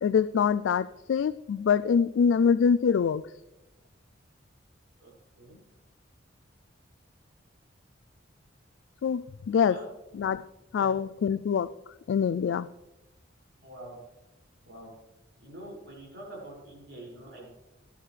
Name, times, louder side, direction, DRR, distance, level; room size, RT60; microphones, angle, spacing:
voice 1, 0.0-3.2 9.0-9.8 10.2-10.4 10.7-11.7 12.1-12.7, left 6 dB, 70° left, 15 dB, 0.3 m, -24 dB
voice 2, 13.6-14.0 14.6-14.9 15.4-17.5, right 1 dB, 65° right, -3 dB, 5.9 m, -45 dB
16.5 x 12.5 x 3.3 m, 1.0 s
head